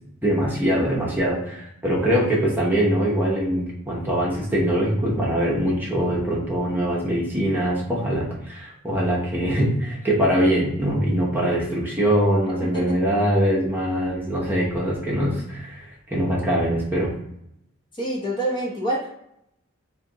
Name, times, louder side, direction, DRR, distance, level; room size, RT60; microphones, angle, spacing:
voice 1, 0.2-15.9 16.1-17.1, equal, 10° right, -5 dB, 0.9 m, -23 dB
voice 2, 12.6-13.0 17.9-19.2, right 1 dB, 25° left, -3 dB, 0.9 m, -27 dB
3.2 x 2.8 x 3.9 m, 0.77 s
head